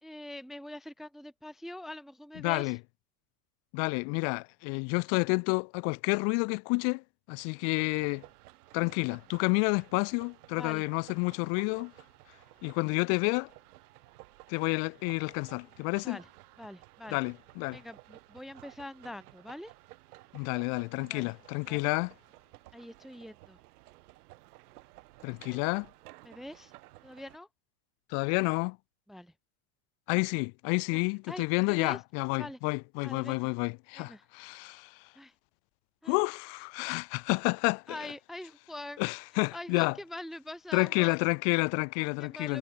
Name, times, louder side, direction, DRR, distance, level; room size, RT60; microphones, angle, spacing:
voice 1, 0.0-2.8 10.6-10.8 16.0-16.3 16.6-17.2 17.7-19.7 20.5-20.6 21.1-21.3 21.7-21.8 22.7-23.6 25.5-25.6 26.2-26.7 27.0-27.5 29.1-29.3 30.9-31.0 31.3-32.0 32.4-32.6 33.0-33.5 34.0-34.3 35.1-35.3 36.0-36.2 37.9-39.0 39.5-41.2 42.0-42.6, left 1 dB, ahead, 0.8 m, -44 dB
voice 2, 2.4-2.8 3.7-8.2 8.7-11.9 12.6-13.5 14.5-16.2 17.1-17.8 20.3-22.1 25.2-25.9 28.1-28.8 30.1-35.0 36.1-38.0 39.0-40.0 40.7-42.6, left 39 dB, 35° left, 0.5 m, -30 dB
sound 1, 7.8-27.4, right 19 dB, 85° right, 2.8 m, -55 dB
supercardioid pair, 170°, 44 cm